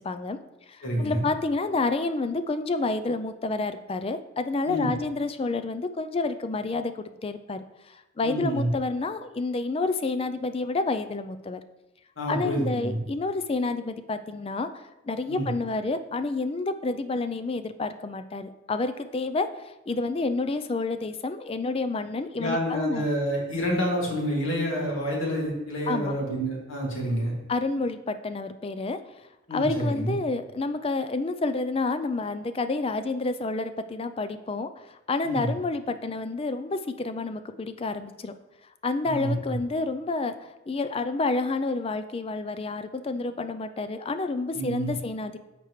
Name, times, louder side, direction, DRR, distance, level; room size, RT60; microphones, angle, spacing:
voice 1, 0.0-0.4 0.7-11.6 12.3-23.0 25.9-26.1 27.5-29.0 29.5-38.3 38.8-45.4, left 3 dB, 25° left, 10 dB, 0.3 m, -29 dB
voice 2, 0.8-1.2 4.7-4.9 8.2-8.7 12.2-13.0 15.3-15.5 22.4-27.3 29.5-30.1 35.2-35.5 39.0-39.3 44.5-44.9, equal, 65° left, -2 dB, 2.2 m, -28 dB
13.0 x 4.5 x 3.1 m, 1.0 s
head